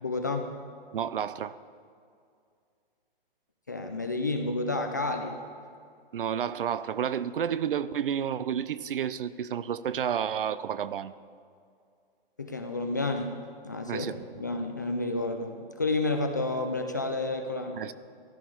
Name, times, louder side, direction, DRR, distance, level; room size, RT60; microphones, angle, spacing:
voice 1, 0.0-0.5 3.7-5.4 12.4-13.3 13.6-17.8, left 2 dB, 20° left, 4 dB, 0.3 m, -30 dB
voice 2, 0.9-1.5 6.1-11.1 13.9-14.2 17.8-17.9, right 8 dB, 65° right, 16 dB, 0.6 m, -30 dB
14.5 x 11.5 x 4.6 m, 2.3 s
hypercardioid pair, 165°, 30 cm